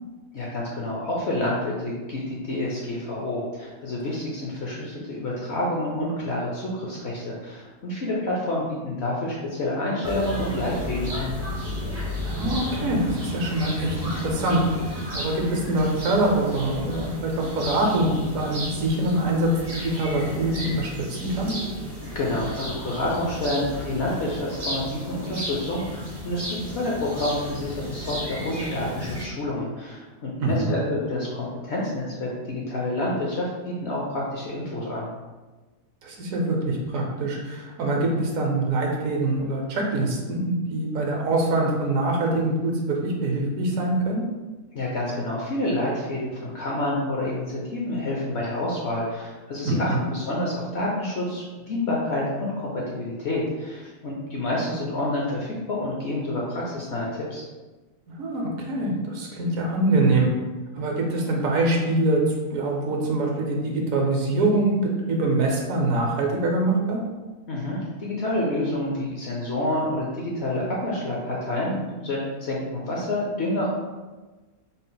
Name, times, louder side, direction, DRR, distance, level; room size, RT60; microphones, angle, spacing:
voice 1, 0.3-11.3 22.1-35.1 44.7-57.4 67.5-73.8, left 1 dB, 60° left, -4 dB, 0.7 m, -28 dB
sound 1, 10.0-29.2, equal, 30° right, 0.4 m, -33 dB
voice 2, 12.2-14.6 15.1-21.5 30.4-30.8 36.0-44.2 49.6-50.0 58.2-60.3 60.7-64.8 65.1-67.0, right 2 dB, 65° right, 0 dB, 1.0 m, -24 dB
3.9 x 2.0 x 3.8 m, 1.2 s
omnidirectional pair, 1.6 m